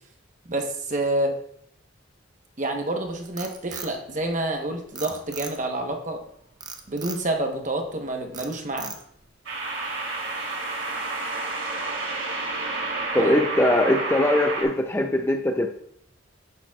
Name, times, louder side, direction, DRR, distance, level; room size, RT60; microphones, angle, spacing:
voice 1, 0.4-1.3 2.6-6.2 6.9-8.9 13.2-13.3, right 1 dB, 40° right, 3 dB, 1.0 m, -28 dB
Frog, 3.1-4.6 5.0-5.8 6.6-7.3 7.7-8.0 8.3-9.3, right 5 dB, 20° right, 0.7 m, -38 dB
sound 1, 5.5-5.8 9.4-14.6, right 2 dB, 70° right, 3.0 m, -30 dB
voice 2, 13.1-15.7, left 1 dB, 10° left, 4 dB, 0.4 m, -21 dB
10.5 x 8.9 x 2.3 m, 0.70 s
head